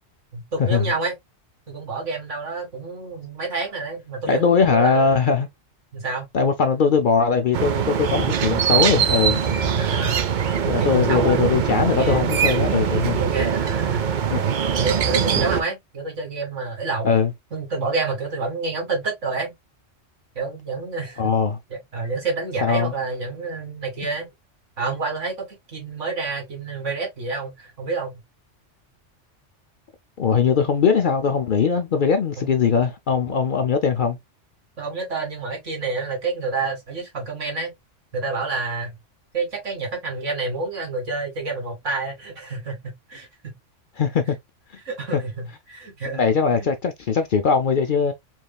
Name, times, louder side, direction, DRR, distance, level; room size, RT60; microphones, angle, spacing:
voice 1, 0.3-1.1 1.7-5.1 5.9-6.3 9.8-10.2 10.8-11.4 11.9-12.5 13.1-14.0 14.7-17.1 17.5-19.5 20.4-21.3 21.9-24.3 24.8-25.5 25.7-28.2 32.4-32.5 34.8-37.7 38.1-38.9 39.3-42.8 43.1-43.3 44.8-46.2, right 4 dB, 75° right, 2.3 m, -28 dB
voice 2, 4.3-5.5 6.3-9.4 10.7-13.2 14.3-14.4 17.0-17.3 21.2-21.6 22.6-22.9 30.2-34.2 44.0-44.4 46.1-48.1, left 5 dB, 55° left, 0.6 m, -20 dB
sound 1, 7.5-15.6, right 7 dB, 55° right, 0.6 m, -22 dB
4.6 x 3.2 x 2.2 m
omnidirectional pair, 1.3 m